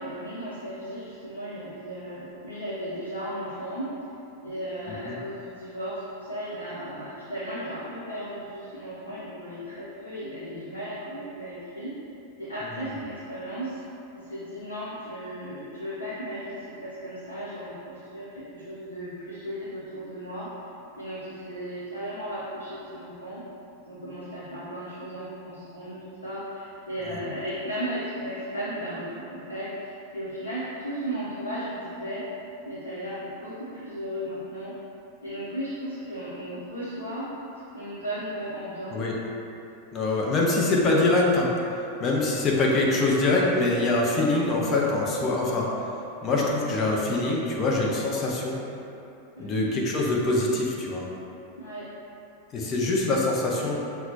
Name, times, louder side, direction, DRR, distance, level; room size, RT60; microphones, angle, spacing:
voice 1, 0.0-4.0 4.4-12.0 12.4-13.8 14.1-20.5 21.0-23.5 23.8-32.3 32.6-34.8 35.2-37.3 37.7-39.0 49.4-49.7 51.6-51.9, equal, 75° left, -10 dB, 0.7 m, -35 dB
voice 2, 39.9-41.5 42.0-45.7 46.2-48.6 49.4-51.0 52.5-53.8, left 2 dB, 30° left, -3 dB, 0.6 m, -24 dB
5.7 x 2.3 x 2.7 m, 2.8 s
figure-of-eight pair, 90°, 0 cm